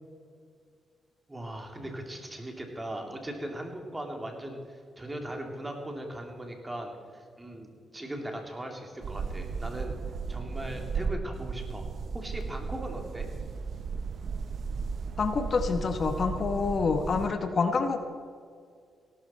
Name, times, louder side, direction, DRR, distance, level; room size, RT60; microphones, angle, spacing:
voice 1, 1.3-10.0 10.3-11.9 12.1-13.3, right 1 dB, 20° right, 2 dB, 2.7 m, -39 dB
sound 1, 9.0-17.3, right 5 dB, 60° right, 0.7 m, -35 dB
voice 2, 15.2-18.0, left 4 dB, 50° left, 7 dB, 1.1 m, -27 dB
17.5 x 12.0 x 4.3 m, 2.1 s
cardioid pair, 75°, 0 cm